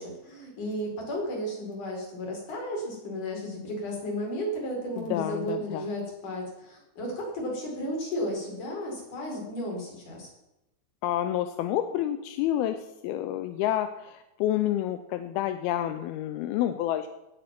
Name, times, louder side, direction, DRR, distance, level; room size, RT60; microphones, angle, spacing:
voice 1, 0.0-10.3, equal, 45° left, -2 dB, 6.0 m, -34 dB
voice 2, 5.0-5.8 11.0-17.1, left 12 dB, 80° left, 8 dB, 2.4 m, -29 dB
18.5 x 8.5 x 6.0 m, 0.93 s
omnidirectional pair, 4.9 m